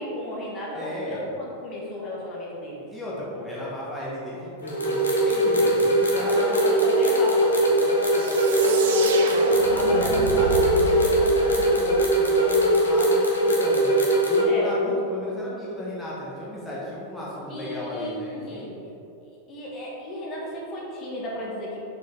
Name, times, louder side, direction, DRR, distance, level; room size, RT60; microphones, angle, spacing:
voice 1, 0.0-2.9 6.2-10.5 14.4-14.8 17.5-18.8 19.5-21.8, left 1 dB, 30° left, -4 dB, 1.4 m, -34 dB
voice 2, 0.7-1.2 2.9-6.8 8.4-9.7 10.0-18.7, left 1 dB, 5° left, -7 dB, 1.2 m, -35 dB
sound 1, 4.6-14.4, right 1 dB, 70° left, 1.0 m, -21 dB
sound 2, 8.1-12.7, right 6 dB, 55° right, 0.4 m, -32 dB
6.4 x 4.6 x 3.3 m, 2.9 s
figure-of-eight pair, 90°, 0 cm